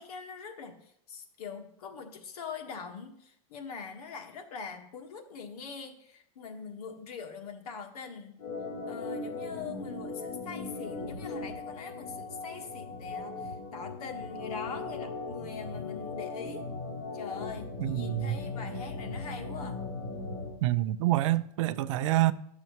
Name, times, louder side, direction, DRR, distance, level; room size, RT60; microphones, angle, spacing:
voice 1, 0.0-8.4 8.8-16.7 17.1-19.9, left 5 dB, 85° left, 1.5 m, -43 dB
Organ, 8.4-20.5, left 3 dB, 65° left, 3.4 m, -38 dB
voice 2, 17.8-18.4 20.6-22.3, right 15 dB, 55° right, 0.4 m, -27 dB
12.5 x 6.7 x 3.0 m
supercardioid pair, 160°, 19 cm